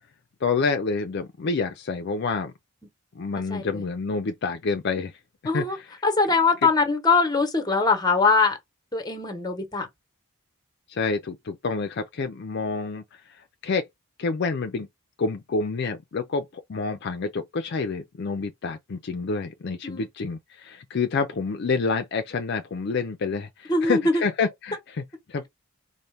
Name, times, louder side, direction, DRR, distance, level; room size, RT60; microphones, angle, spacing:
voice 1, 0.4-2.5 3.2-5.1 5.4-5.9 6.6-6.7 10.9-13.8 14.2-14.9 15.2-25.5, left 4 dB, 55° left, 0.4 m, -28 dB
voice 2, 3.5-3.8 5.4-5.8 6.0-8.6 8.9-9.9 19.8-20.1 23.7-24.2, left 4 dB, 20° left, 1.0 m, -22 dB
4.1 x 2.1 x 3.3 m
head